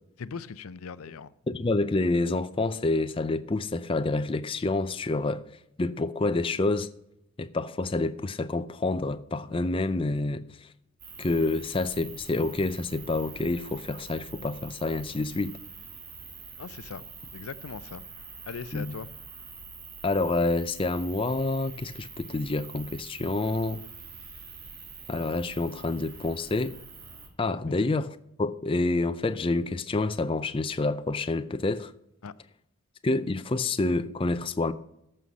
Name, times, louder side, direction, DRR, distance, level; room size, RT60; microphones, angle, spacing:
voice 1, 0.2-1.3 16.6-17.0 17.3-18.0 18.4-19.1 32.2-32.3, left 5 dB, 75° left, 0.5 m, -39 dB
voice 2, 1.5-5.4 5.8-6.9 7.4-10.7 11.2-15.6 18.7-18.9 20.0-23.8 25.1-26.8 27.4-31.9 33.0-34.7, left 2 dB, 25° left, 0.4 m, -28 dB
sound 1, 11.0-27.3, right 5 dB, 45° right, 2.4 m, -45 dB
14.0 x 5.6 x 6.2 m
head